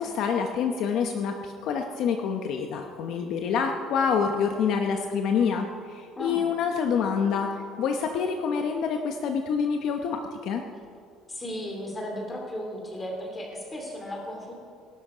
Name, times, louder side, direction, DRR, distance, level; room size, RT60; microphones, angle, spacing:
voice 1, 0.0-10.6, left 6 dB, 55° left, 4 dB, 0.9 m, -27 dB
voice 2, 11.3-14.5, left 1 dB, 15° left, 1 dB, 2.8 m, -35 dB
18.0 x 12.0 x 5.1 m, 2.3 s
cardioid pair, 170°, 0 cm